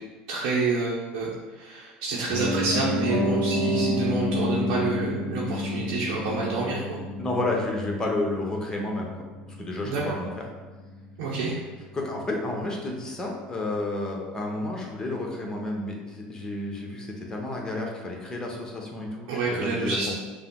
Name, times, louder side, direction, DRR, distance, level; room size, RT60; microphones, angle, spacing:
voice 1, 0.3-7.0 9.8-10.2 11.2-11.6 19.3-20.1, right 3 dB, 75° right, -6 dB, 0.9 m, -28 dB
Piano, 2.3-12.3 12.6-12.7, left 1 dB, 45° left, 1.0 m, -30 dB
voice 2, 7.2-9.1 9.5-10.3 11.9-20.2, left 2 dB, 15° left, -1 dB, 1.0 m, -31 dB
5.4 x 2.0 x 3.7 m, 1.3 s
supercardioid pair, 90°, 4 cm